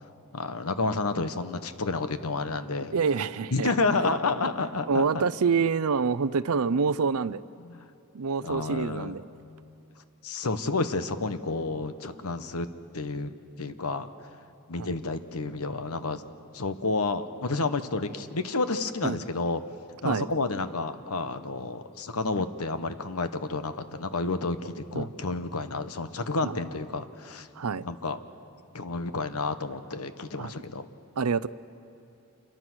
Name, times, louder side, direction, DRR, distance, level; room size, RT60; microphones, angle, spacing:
voice 1, 0.3-2.9 3.5-5.2 7.6-7.9 8.4-9.2 10.2-12.7 12.9-13.3 13.6-14.1 14.7-16.2 16.5-19.6 20.0-27.5 27.8-28.2 28.7-30.9, left 3 dB, 90° left, 10 dB, 1.2 m, -30 dB
voice 2, 2.9-3.7 4.9-7.4 8.1-9.2 14.8-14.9 19.0-19.2 20.0-20.3 24.9-25.1 26.4-26.6 27.6-27.9 30.4-30.5 31.2-31.5, right 5 dB, 85° right, 17 dB, 0.6 m, -26 dB
28.0 x 23.0 x 6.3 m, 2.6 s
head